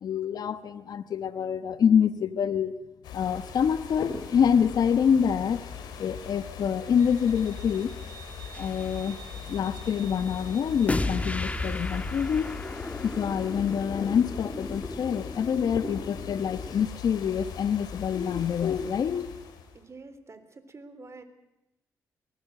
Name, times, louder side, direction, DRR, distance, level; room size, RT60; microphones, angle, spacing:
voice 1, 0.0-2.7 3.1-5.6 6.0-7.9 8.6-9.2 9.4-12.5 13.0-19.3, left 7 dB, 70° left, 12 dB, 1.1 m, -26 dB
sound 1, 3.0-19.8, left 7 dB, 85° left, 3.8 m, -40 dB
Wind instrument woodwind instrument, 7.0-11.5, right 8 dB, 60° right, 3.2 m, -50 dB
sound 2, 8.5-8.9 10.9-16.9, left 2 dB, 20° left, 1.7 m, -34 dB
voice 2, 19.7-21.2, right 3 dB, 40° right, 10 dB, 3.5 m, -47 dB
23.5 x 20.5 x 7.8 m, 0.93 s
supercardioid pair, 60°, 7 cm